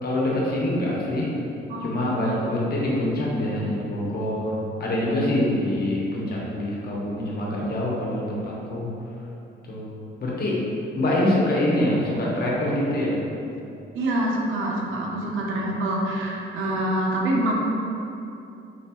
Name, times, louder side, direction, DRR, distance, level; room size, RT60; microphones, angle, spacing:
voice 1, 0.0-1.3 1.8-8.9 9.6-9.9 10.2-10.6 11.0-13.2, left 1 dB, 50° left, -4 dB, 1.2 m, -25 dB
voice 2, 13.9-17.5, right 1 dB, 80° right, -2 dB, 0.8 m, -25 dB
5.1 x 3.3 x 3.0 m, 2.7 s
cardioid pair, 90°, 20 cm